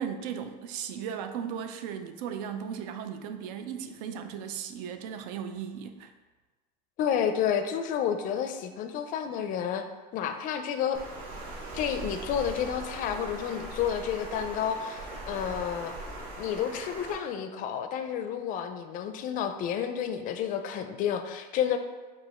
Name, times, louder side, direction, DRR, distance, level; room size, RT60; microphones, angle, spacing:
voice 1, 0.0-6.1, right 8 dB, 75° right, 8 dB, 0.5 m, -36 dB
voice 2, 7.0-9.9 10.1-11.0 11.7-15.9 16.4-21.8, left 8 dB, 40° left, 8 dB, 0.4 m, -30 dB
Water, 10.9-17.1, right 2 dB, 45° right, 1.3 m, -40 dB
4.8 x 2.4 x 4.2 m, 1.3 s
supercardioid pair, 130°, 21 cm